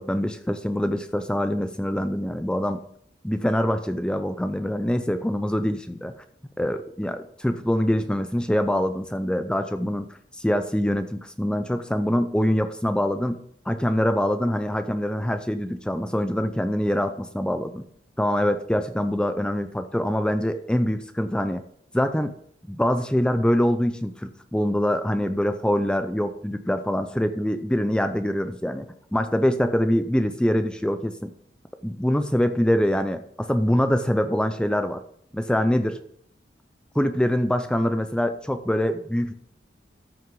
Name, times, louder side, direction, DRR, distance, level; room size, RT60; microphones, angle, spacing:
voice 1, 0.0-2.8 3.2-6.1 6.6-10.1 10.3-13.4 13.7-17.8 18.2-21.6 21.9-22.3 22.7-31.3 31.8-35.0 35.3-36.0 36.9-39.3, equal, 5° left, 9 dB, 0.4 m, -24 dB
14.0 x 6.0 x 3.8 m, 0.67 s
head